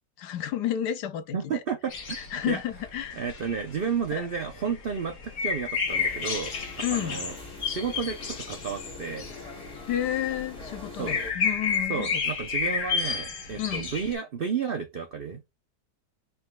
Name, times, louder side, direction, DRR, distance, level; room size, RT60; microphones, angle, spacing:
voice 1, 0.2-1.6 2.1-3.2 4.1-4.3 6.8-7.2 9.9-12.2 13.6-13.8, left 11 dB, 75° left, 1.2 m, -31 dB
voice 2, 1.3-2.2 2.5-2.6 3.2-6.5 6.9-7.4 7.6-9.3 11.0-11.1 11.9-15.4, right 6 dB, 75° right, 0.5 m, -32 dB
sound 1, 1.9-14.1, left 5 dB, 55° left, 1.5 m, -31 dB
sound 2, 5.9-11.3, left 3 dB, 5° left, 1.7 m, -43 dB
5.2 x 3.7 x 2.2 m
omnidirectional pair, 1.9 m